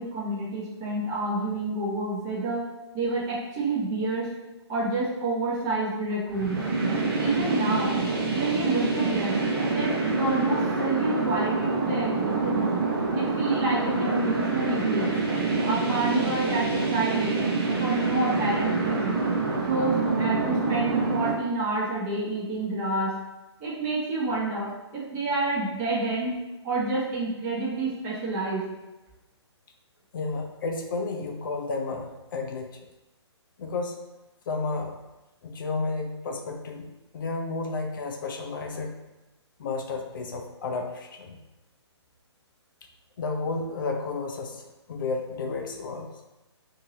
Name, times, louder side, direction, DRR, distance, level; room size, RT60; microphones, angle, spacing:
voice 1, 0.0-2.7 2.9-4.3 4.7-6.7 7.2-8.0 8.3-12.6 13.1-15.2 15.7-17.4 17.8-19.3 19.7-23.2 23.6-26.4 26.6-28.7, right 2 dB, 20° right, -5 dB, 0.8 m, -29 dB
sound 1, 6.3-21.3, right 3 dB, 50° right, 0.8 m, -26 dB
voice 2, 30.1-32.7 33.6-34.0 34.5-35.0 35.4-39.0 39.6-41.4 43.2-44.6 44.9-46.1, left 3 dB, 45° left, 3 dB, 0.5 m, -32 dB
2.8 x 2.7 x 3.0 m, 1.0 s
figure-of-eight pair, 130°, 15 cm